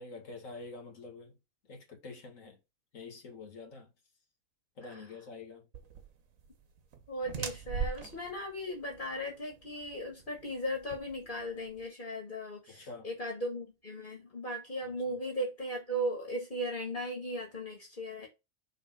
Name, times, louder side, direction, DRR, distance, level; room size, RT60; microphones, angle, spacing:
voice 1, 0.0-1.3 1.7-2.6 2.9-3.9 4.8-5.7 12.7-13.1 14.9-15.2, left 3 dB, 75° left, 2.1 m, -47 dB
sound 1, 5.7-11.8, right 6 dB, 80° right, 1.4 m, -41 dB
voice 2, 7.1-18.3, equal, 35° left, 1.9 m, -37 dB
5.6 x 3.4 x 5.7 m
omnidirectional pair, 1.4 m